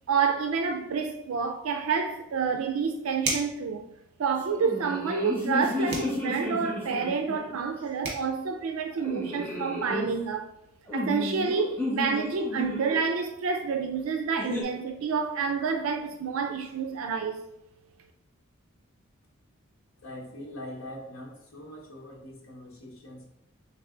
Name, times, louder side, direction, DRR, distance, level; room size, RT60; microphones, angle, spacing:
voice 1, 0.1-3.9 4.2-10.5 10.9-17.4, right 5 dB, 75° right, 0.4 m, -28 dB
sound 1, 3.2-3.6 5.9-6.2 7.7-7.8 8.0-8.3, right 3 dB, 50° right, 1.2 m, -31 dB
sound 2, 4.5-7.5 9.0-10.1 10.9-13.0 14.4-14.6, left 1 dB, 10° left, 1.0 m, -32 dB
voice 2, 20.0-23.3, left 1 dB, 80° left, 1.0 m, -42 dB
3.3 x 3.2 x 3.7 m
head